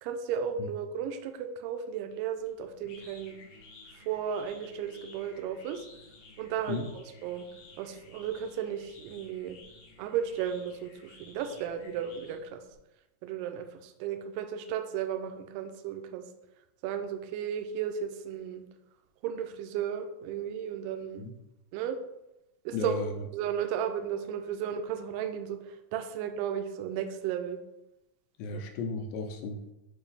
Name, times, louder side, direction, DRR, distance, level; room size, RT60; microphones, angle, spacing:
voice 1, 0.0-3.4 3.9-5.9 6.4-7.5 7.8-9.6 10.0-12.6 13.2-16.2 16.8-18.6 19.2-21.3 21.7-22.0 22.7-23.0 23.3-27.6 28.5-28.6, right 8 dB, 80° right, 7 dB, 2.1 m, -34 dB
sound 1, 2.4-12.8, left 3 dB, 70° left, 2.4 m, -54 dB
voice 2, 22.7-23.1 28.4-29.6, left 3 dB, 85° left, 5 dB, 2.5 m, -34 dB
6.9 x 2.7 x 5.4 m, 0.92 s
omnidirectional pair, 4.2 m